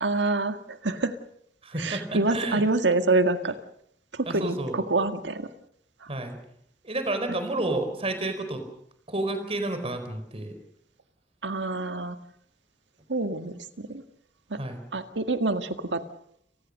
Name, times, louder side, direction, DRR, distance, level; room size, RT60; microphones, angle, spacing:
voice 1, 0.0-1.2 1.8-3.5 4.1-5.5 6.0-6.1 7.3-7.4 11.4-12.2 13.1-14.0 14.5-14.6 14.9-16.0, right 2 dB, 90° right, 9 dB, 1.8 m, -26 dB
voice 2, 1.6-2.6 4.3-4.8 6.1-6.4 6.8-8.6 9.1-10.5 14.6-14.8, right 2 dB, 35° right, 8 dB, 4.6 m, -30 dB
30.0 x 19.0 x 6.6 m, 0.70 s
head